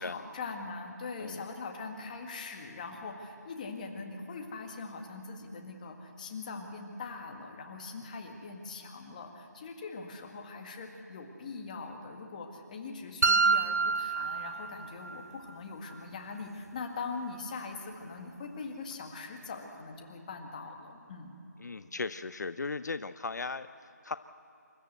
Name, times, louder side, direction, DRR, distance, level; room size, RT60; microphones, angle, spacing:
voice 1, 0.0-21.3, left 4 dB, 25° left, 3 dB, 1.9 m, -42 dB
sound 1, 13.2-15.2, right 4 dB, 60° right, 0.8 m, -27 dB
voice 2, 21.6-24.2, left 4 dB, 70° left, 12 dB, 0.6 m, -37 dB
27.5 x 13.0 x 8.0 m, 2.9 s
figure-of-eight pair, 165°, 10 cm